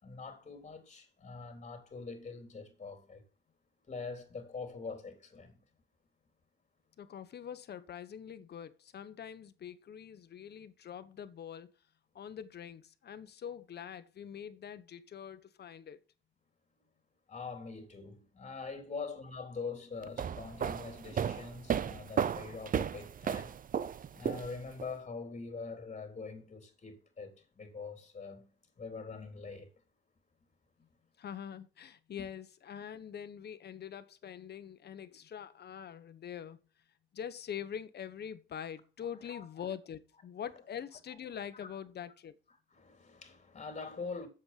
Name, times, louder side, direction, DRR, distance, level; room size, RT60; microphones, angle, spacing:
voice 1, 0.0-3.2 3.9-5.6 17.3-23.5 24.1-29.7 39.3-39.5 41.5-41.7 42.7-44.3, left 4 dB, 35° left, 3.5 m, -44 dB
voice 2, 7.0-11.7 12.1-16.0 31.2-36.6 37.1-42.3, left 8 dB, 55° left, 1.3 m, -44 dB
sound 1, 20.0-24.9, right 8 dB, 45° right, 0.7 m, -34 dB
7.9 x 7.4 x 5.9 m
cardioid pair, 90°, 20 cm